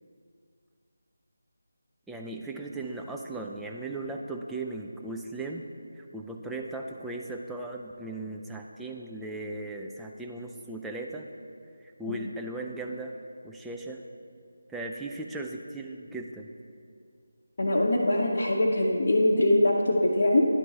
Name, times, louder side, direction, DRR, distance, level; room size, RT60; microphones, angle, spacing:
voice 1, 2.1-5.6 5.9-11.3 11.8-13.1 13.4-14.0 14.7-16.5, right 2 dB, 5° right, 0 dB, 0.3 m, -37 dB
voice 2, 17.6-20.5, left 1 dB, 50° left, -4 dB, 0.7 m, -23 dB
10.5 x 4.6 x 4.0 m, 2.3 s
figure-of-eight pair, 160°, 0 cm